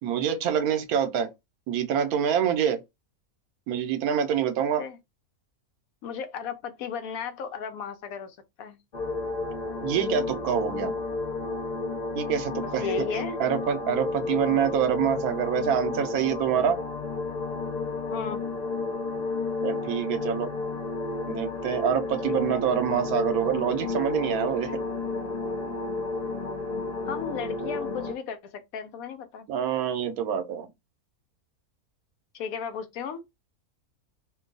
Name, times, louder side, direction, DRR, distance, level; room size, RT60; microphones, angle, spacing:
voice 1, 0.0-1.3 1.7-2.8 3.7-4.8 9.8-11.0 12.1-13.1 13.4-16.8 19.6-20.5 21.3-24.8 29.5-30.7, right 8 dB, 80° right, 1.1 m, -26 dB
voice 2, 6.0-8.8 12.6-13.4 18.1-18.4 25.7-25.8 27.0-29.5 32.3-33.2, left 6 dB, 75° left, 1.1 m, -35 dB
sound 1, 8.9-28.1, left 3 dB, 50° left, 0.5 m, -32 dB
2.8 x 2.3 x 3.8 m
omnidirectional pair, 1.5 m